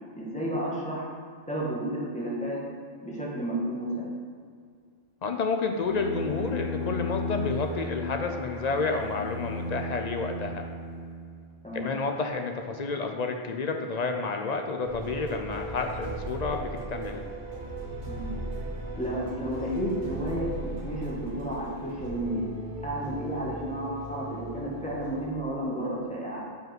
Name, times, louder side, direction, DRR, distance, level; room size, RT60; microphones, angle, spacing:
voice 1, 0.2-1.1 1.5-2.6 3.0-4.1 11.6-11.9 18.1-18.4 19.0-22.5 22.8-26.4, right 1 dB, 5° left, -6 dB, 1.6 m, -32 dB
voice 2, 5.2-10.6 11.7-17.2, left 4 dB, 50° left, 4 dB, 0.6 m, -30 dB
Bowed string instrument, 5.8-11.6, left 2 dB, 70° left, 1.0 m, -34 dB
sound 1, 14.8-25.3, right 2 dB, 50° right, 1.2 m, -37 dB
5.3 x 4.9 x 6.0 m, 2.1 s
omnidirectional pair, 1.0 m